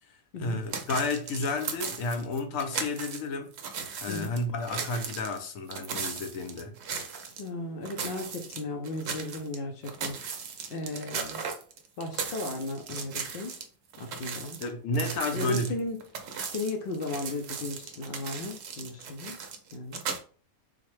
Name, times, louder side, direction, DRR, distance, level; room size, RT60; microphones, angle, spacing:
voice 1, 0.4-3.5 4.0-6.8 14.6-15.8, left 2 dB, 75° left, 1.0 m, -31 dB
Footsteps Walking On Gravel Stones Slow Pace, 0.7-3.2 3.5-7.5 7.8-9.6 9.8-13.6 13.9-20.2, right 6 dB, 60° right, 0.7 m, -37 dB
voice 2, 4.1-4.4 7.4-10.4 10.7-11.4 12.0-13.5 14.0-14.6 15.3-16.1 16.5-19.4 19.7-20.0, left 2 dB, 60° left, 0.6 m, -36 dB
3.9 x 2.2 x 3.1 m
omnidirectional pair, 1.4 m